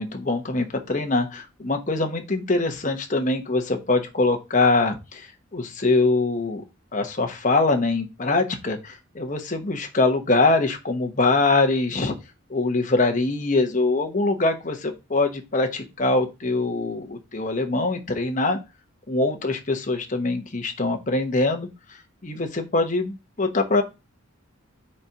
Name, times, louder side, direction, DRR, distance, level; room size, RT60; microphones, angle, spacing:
voice 1, 0.0-6.6 6.9-12.1 12.5-18.6 19.1-21.7 22.2-23.8, left 3 dB, 40° left, 5 dB, 1.0 m, -23 dB
4.4 x 4.0 x 5.6 m, 0.25 s
head